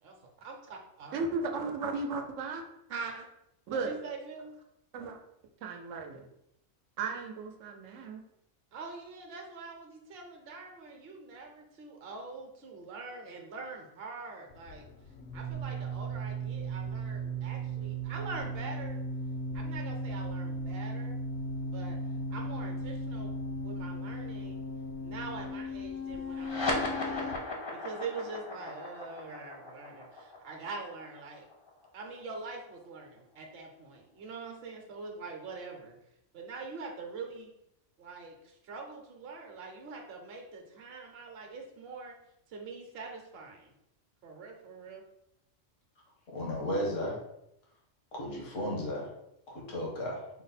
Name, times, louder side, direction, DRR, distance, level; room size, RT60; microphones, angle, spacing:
voice 1, 0.0-1.2 2.9-3.3 3.7-4.6 8.7-14.9 15.3-19.0 19.5-21.2 21.6-22.0 22.3-23.4 23.6-24.6 25.0-27.4 27.7-31.5 31.9-36.0 36.3-37.5 38.0-42.1 42.5-43.7 44.2-45.0, right 4 dB, 60° right, 1 dB, 0.9 m, -44 dB
voice 2, 1.1-2.6 3.7-4.0 4.9-5.2 5.6-6.3 7.0-8.2, right 4 dB, 85° right, 4 dB, 1.0 m, -35 dB
sound 1, 14.5-27.3, right 1 dB, 70° left, 0.8 m, -36 dB
sound 2, 26.3-33.2, left 2 dB, 30° left, 0.5 m, -37 dB
voice 3, 46.3-47.2 48.1-49.1 49.5-50.2, equal, 85° left, -2 dB, 1.5 m, -34 dB
4.6 x 2.1 x 4.1 m, 0.81 s
omnidirectional pair, 1.3 m